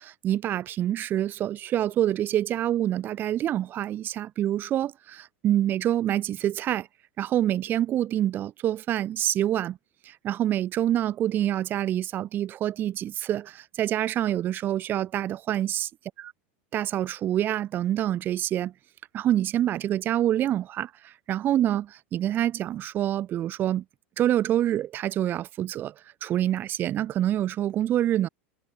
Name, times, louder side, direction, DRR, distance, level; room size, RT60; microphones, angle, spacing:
voice 1, 0.0-6.9 7.2-9.8 10.0-15.9 16.2-16.3 16.7-18.7 19.1-23.8 24.2-25.9 26.2-28.3, right 12 dB, 30° right, 0.6 m, -26 dB
supercardioid pair, 130°, 7 cm